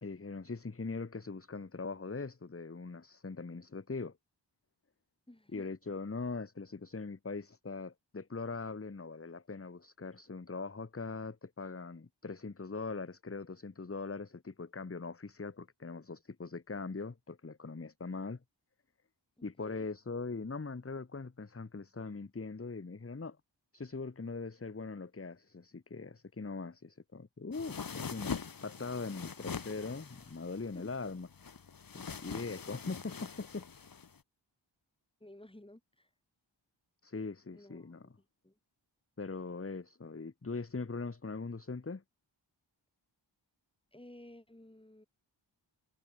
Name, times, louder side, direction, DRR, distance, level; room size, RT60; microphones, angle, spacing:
voice 1, 0.0-4.2 5.5-18.4 19.4-23.4 23.7-28.3 28.6-31.3 31.9-33.7 37.0-38.1 39.2-42.0, left 4 dB, 30° left, 1.5 m, -41 dB
voice 2, 5.3-5.7 19.4-19.9 30.7-30.9 35.2-36.1 37.5-38.6 43.9-45.1, left 1 dB, 10° left, 5.6 m, -55 dB
sound 1, 27.5-34.2, left 6 dB, 45° left, 1.3 m, -43 dB
wide cardioid pair, 110°, 46 cm